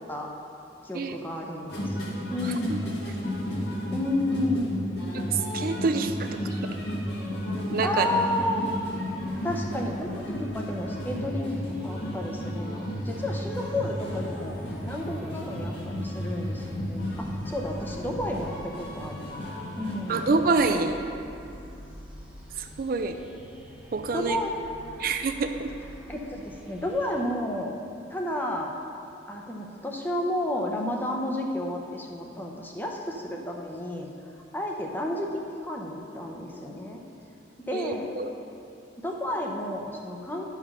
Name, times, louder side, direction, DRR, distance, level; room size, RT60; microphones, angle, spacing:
voice 1, 0.8-2.0 2.3-2.9 3.9-4.7 7.8-8.7 9.4-14.6 14.8-19.5 19.8-20.4 24.1-24.5 26.1-27.8 28.1-28.7 29.3-34.1 34.5-37.0 37.7-38.2 39.0-40.5, left 1 dB, 10° left, 0 dB, 0.7 m, -31 dB
sound 1, 1.7-20.7, equal, 65° left, 1.7 m, -33 dB
voice 2, 5.1-6.6 7.7-8.1 20.1-21.0 22.6-23.2 23.9-24.4 25.0-25.7 37.7-38.3, right 4 dB, 50° right, 7 dB, 0.4 m, -27 dB
sound 2, 8.2-27.2, equal, 5° right, 1.2 m, -48 dB
11.5 x 4.9 x 5.5 m, 2.7 s
head